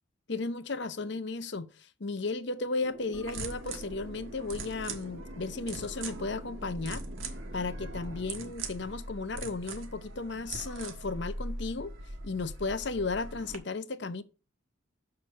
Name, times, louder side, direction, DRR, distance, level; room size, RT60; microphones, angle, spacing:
voice 1, 0.3-7.1 7.5-11.9 12.2-14.2, left 3 dB, 60° left, 0.7 m, -35 dB
sound 1, 2.8-8.5, right 1 dB, 60° right, 1.4 m, -48 dB
sound 2, 3.1-13.6, right 2 dB, 85° right, 1.4 m, -41 dB
6.6 x 5.7 x 6.3 m
head